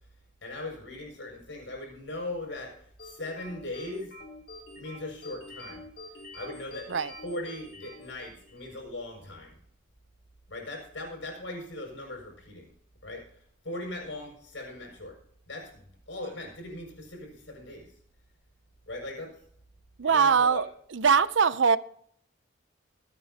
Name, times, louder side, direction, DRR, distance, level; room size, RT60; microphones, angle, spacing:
voice 1, 0.4-4.1 4.8-5.8 6.3-6.9 7.2-9.6 10.5-12.7 13.0-15.2 15.5-17.9 18.9-19.3 20.0-20.6, left 1 dB, 75° left, 6.8 m, -39 dB
sound 1, 3.0-8.7, left 2 dB, 55° left, 4.8 m, -46 dB
voice 2, 20.0-20.6 20.9-21.8, right 6 dB, 75° right, 0.6 m, -22 dB
24.0 x 9.3 x 2.9 m
head